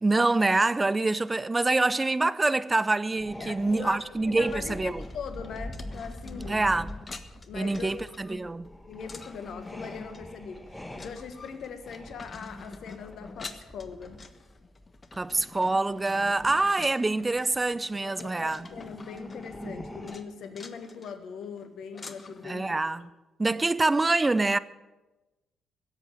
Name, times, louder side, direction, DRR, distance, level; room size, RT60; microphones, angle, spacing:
voice 1, 0.0-5.0 6.5-6.9 7.5-8.7 15.2-18.7 22.4-23.1 23.4-24.6, right 2 dB, 25° right, 0.6 m, -25 dB
sound 1, 3.1-16.7 17.3-17.7 18.4-20.2, left 1 dB, 10° left, 2.1 m, -44 dB
voice 2, 3.4-6.6 7.5-8.4 8.9-14.2 18.0-23.1, left 6 dB, 65° left, 1.6 m, -41 dB
sound 2, 5.0-22.5, left 3 dB, 35° left, 1.3 m, -46 dB
16.0 x 8.1 x 9.1 m
hypercardioid pair, 50°, 0 cm